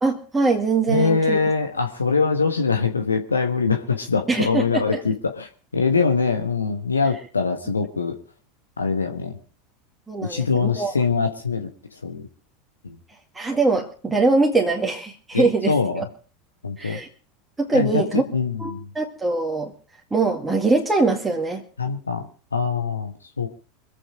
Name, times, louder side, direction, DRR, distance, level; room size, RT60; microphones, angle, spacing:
voice 1, 0.0-1.4 4.3-5.0 10.1-10.9 13.3-16.0 16.8-17.1 17.6-18.2 18.6-19.7 20.1-21.6, right 3 dB, 15° right, 1 dB, 2.1 m, -22 dB
voice 2, 0.9-8.2 8.8-9.4 10.2-11.7 12.0-12.3 12.8-12.9 15.3-16.1 16.6-17.0 17.7-18.8 21.8-23.5, left 4 dB, 80° left, 5 dB, 1.3 m, -23 dB
24.5 x 8.7 x 4.9 m, 0.40 s
figure-of-eight pair, 80°, 0 cm